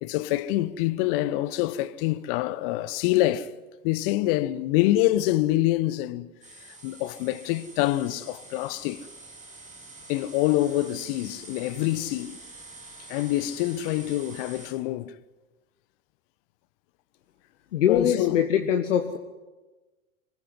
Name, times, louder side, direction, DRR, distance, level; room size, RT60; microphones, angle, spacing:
voice 1, 0.0-3.5 3.8-6.3 6.6-9.1 10.1-12.4 13.1-15.2 17.9-18.5, left 15 dB, 40° left, 1.1 m, -26 dB
sound 1, 6.4-14.7, right 2 dB, 15° right, 6.9 m, -46 dB
voice 2, 17.7-19.2, left 9 dB, 55° left, 1.7 m, -23 dB
25.0 x 21.0 x 9.7 m
figure-of-eight pair, 95°, 43 cm